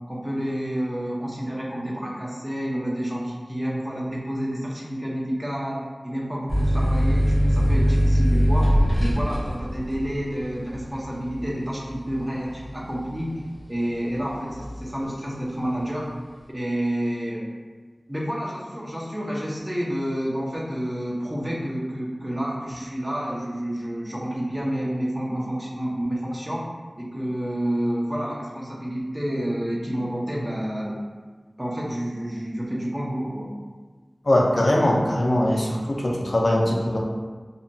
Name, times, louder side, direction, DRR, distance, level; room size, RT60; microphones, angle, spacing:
voice 1, 0.1-8.7 9.0-13.3 13.7-16.1 16.5-17.4 18.1-26.6 27.0-31.0 31.6-33.5, equal, 20° right, -4 dB, 0.5 m, -29 dB
sound 1, 6.5-13.8 14.2-14.9, equal, 5° right, 0.9 m, -22 dB
voice 2, 34.3-37.0, left 1 dB, 60° left, -2 dB, 0.4 m, -21 dB
2.8 x 2.2 x 2.6 m, 1.4 s
wide cardioid pair, 55°, 0 cm